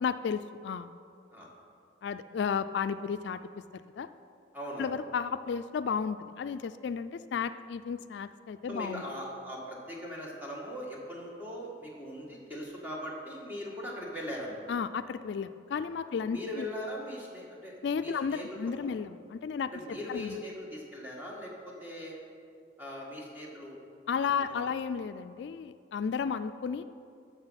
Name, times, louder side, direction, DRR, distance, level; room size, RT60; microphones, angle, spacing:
voice 1, 0.0-0.9 2.0-3.4 4.0-4.1 4.8-9.0 14.7-16.7 17.8-19.7 20.1-20.4 24.1-26.8, left 6 dB, 65° left, 12 dB, 0.3 m, -33 dB
voice 2, 4.5-4.9 8.7-14.7 16.1-18.9 19.7-22.1 22.8-23.8 24.3-24.7, equal, 10° right, -4 dB, 1.8 m, -40 dB
14.0 x 6.0 x 5.8 m, 2.4 s
head